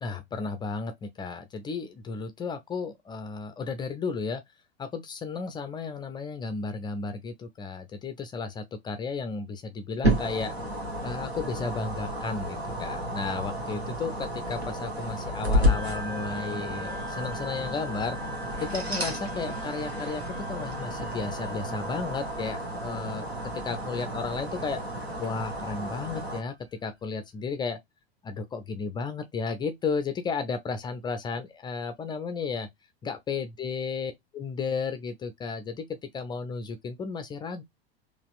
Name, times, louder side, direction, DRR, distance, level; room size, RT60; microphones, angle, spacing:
voice 1, 0.0-4.4 4.8-10.5 11.0-18.2 18.6-23.3 23.6-24.8 25.2-26.5 26.8-27.8 28.2-32.7 33.0-37.6, left 4 dB, 15° left, 0.4 m, -33 dB
sound 1, 10.0-26.4, equal, 85° right, 1.0 m, -31 dB
sound 2, 15.7-26.5, equal, 70° right, 1.8 m, -45 dB
4.0 x 2.5 x 2.3 m
figure-of-eight pair, 85°, 31 cm